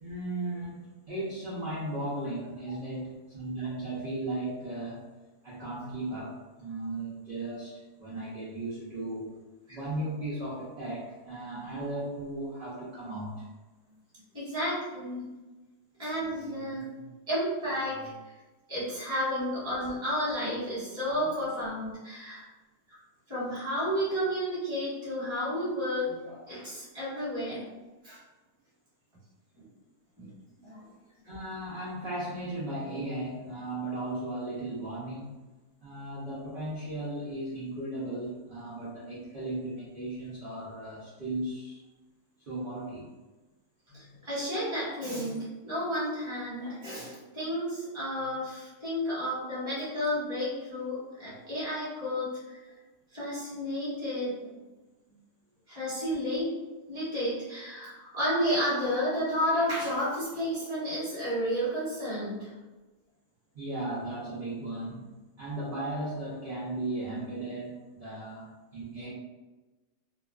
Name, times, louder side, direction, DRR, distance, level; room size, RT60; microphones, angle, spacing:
voice 1, 0.0-5.1 5.4-9.4 9.7-13.4 31.2-35.3 35.8-41.8 42.4-43.1 55.1-55.2 63.5-69.1, right 1 dB, 85° right, -8 dB, 0.4 m, -36 dB
voice 2, 14.3-15.3 16.0-16.9 17.3-18.1 18.7-22.4 23.3-27.6 28.0-28.2 29.5-29.6 30.2-30.3 30.6-30.9 43.9-52.3 53.1-54.6 55.7-56.5 56.9-62.5, equal, 20° right, -9 dB, 1.1 m, -32 dB
2.5 x 2.2 x 2.3 m, 1.2 s
omnidirectional pair, 1.7 m